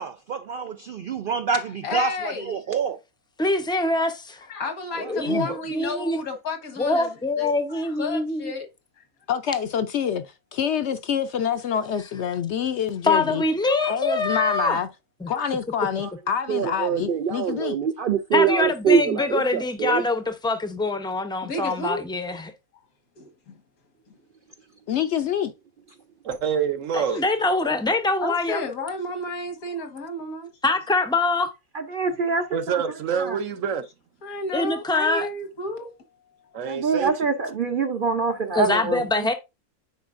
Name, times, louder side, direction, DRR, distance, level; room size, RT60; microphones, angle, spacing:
voice 1, 0.0-3.0 5.3-5.4 16.5-20.0, right 7 dB, 90° right, 0.4 m, -25 dB
voice 2, 1.8-2.6 4.5-8.7 9.0-9.1 13.6-14.0 21.4-22.4 23.2-23.6 28.2-30.5 34.2-35.9, left 2 dB, 80° left, 1.8 m, -32 dB
voice 3, 3.4-4.4 5.1-6.2 6.8-8.5 13.0-14.8 15.2-15.3 18.3-22.5 26.9-28.6 30.6-31.5 34.5-35.3 38.6-39.3, left 2 dB, 5° left, 0.4 m, -24 dB
voice 4, 9.3-13.4 13.9-14.9 15.3-17.8 24.9-25.5, left 8 dB, 65° left, 0.7 m, -26 dB
voice 5, 26.2-27.2 32.5-33.9 36.5-37.1, right 7 dB, 65° right, 1.1 m, -26 dB
voice 6, 31.7-32.8 33.1-33.4 36.7-39.3, right 4 dB, 50° right, 0.7 m, -25 dB
9.3 x 4.3 x 2.5 m
omnidirectional pair, 1.5 m